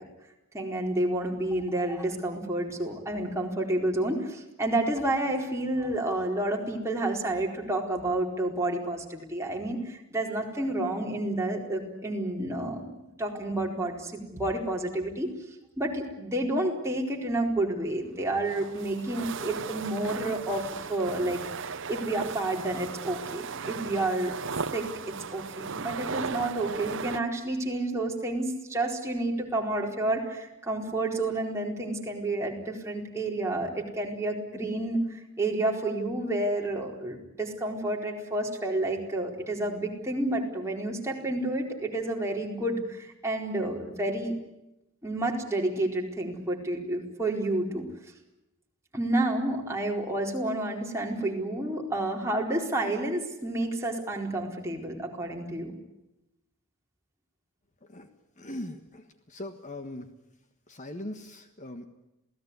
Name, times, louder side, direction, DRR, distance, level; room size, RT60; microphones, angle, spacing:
voice 1, 0.5-15.3 15.8-24.3 24.7-24.9 25.3-44.3 45.0-47.8 48.9-55.8, right 1 dB, 15° right, 0 dB, 4.4 m, -30 dB
sound 1, 18.2-27.2, right 5 dB, 60° right, 0.9 m, -36 dB
voice 2, 58.4-60.1 60.7-61.9, left 1 dB, 35° left, 8 dB, 1.5 m, -40 dB
28.0 x 18.0 x 9.7 m, 0.93 s
head